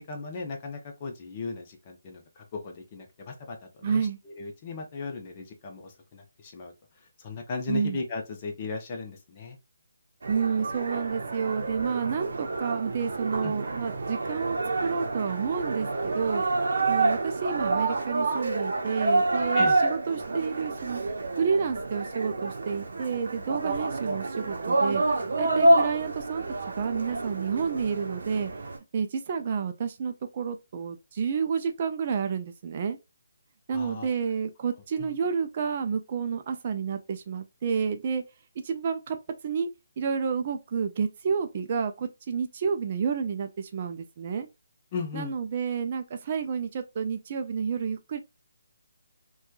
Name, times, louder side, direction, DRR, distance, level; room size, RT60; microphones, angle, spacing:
voice 1, 0.0-6.7 7.2-9.6 13.4-13.5 19.5-19.8 33.7-34.1 35.0-35.2 44.9-45.4, left 4 dB, 30° left, 0.6 m, -37 dB
voice 2, 3.8-4.2 7.7-8.0 10.3-21.0 21.4-25.0 25.4-26.4 26.8-28.5 28.9-33.0 33.7-38.2 38.6-39.2 39.4-39.7 40.0-44.5 45.1-48.2, right 6 dB, 35° right, 0.3 m, -30 dB
sound 1, 10.2-28.8, right 2 dB, 70° right, 0.7 m, -28 dB
2.9 x 2.2 x 2.3 m
hypercardioid pair, 165°, 0 cm